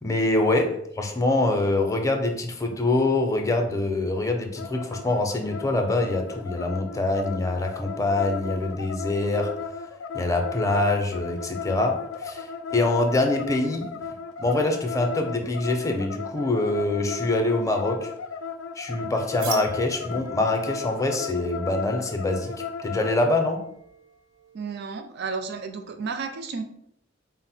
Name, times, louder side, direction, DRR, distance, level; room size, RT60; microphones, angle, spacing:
voice 1, 0.0-9.6 10.1-13.9 14.4-18.1 18.8-23.6, left 2 dB, 15° left, 4 dB, 0.5 m, -25 dB
sound 1, 4.6-23.2, left 6 dB, 80° left, 0.3 m, -35 dB
sound 2, 19.4-24.9, right 4 dB, 85° right, 1.0 m, -43 dB
voice 2, 24.5-26.6, right 5 dB, 55° right, 8 dB, 0.5 m, -32 dB
4.2 x 2.0 x 4.2 m, 0.70 s
head